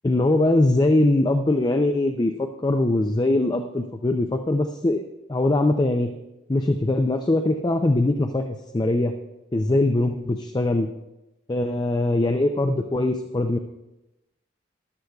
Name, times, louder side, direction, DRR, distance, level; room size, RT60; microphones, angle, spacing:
voice 1, 0.0-5.0 5.3-6.1 6.5-9.1 9.5-10.9 11.5-13.6, left 2 dB, 25° left, 6 dB, 0.5 m, -22 dB
14.0 x 11.5 x 2.3 m, 0.96 s
head